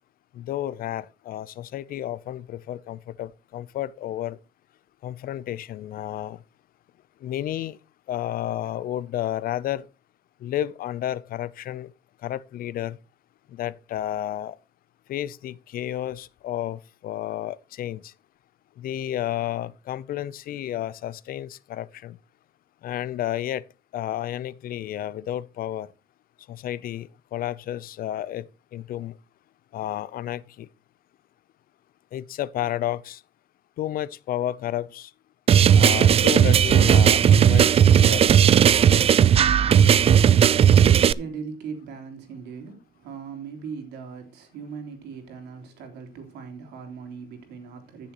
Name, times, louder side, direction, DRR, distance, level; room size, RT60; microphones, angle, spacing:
voice 1, 0.3-4.4 5.0-6.4 7.2-7.8 8.1-9.9 10.4-11.9 12.2-13.0 13.5-14.6 15.1-18.1 18.8-22.2 22.8-23.6 23.9-25.9 26.5-28.4 28.7-29.1 29.7-30.7 32.1-33.2 33.8-35.1 35.7-38.3, left 12 dB, 60° left, 0.6 m, -31 dB
sound 1, 35.5-41.1, right 9 dB, 35° right, 0.4 m, -16 dB
voice 2, 40.4-48.1, right 6 dB, 85° right, 3.4 m, -39 dB
15.0 x 6.9 x 3.0 m
cardioid pair, 110°, 17 cm